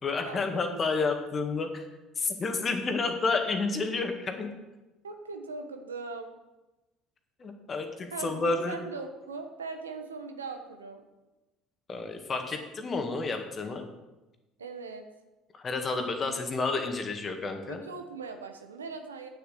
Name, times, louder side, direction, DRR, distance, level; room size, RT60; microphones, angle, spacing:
voice 1, 0.0-1.9 2.2-4.5 7.4-8.8 11.9-13.8 15.5-17.8, left 3 dB, 35° left, 5 dB, 1.8 m, -30 dB
voice 2, 5.0-6.3 8.1-11.0 14.6-15.1 17.7-19.3, right 4 dB, 85° right, 6 dB, 1.0 m, -39 dB
9.1 x 7.2 x 6.9 m, 1.1 s
hypercardioid pair, 60°, 0 cm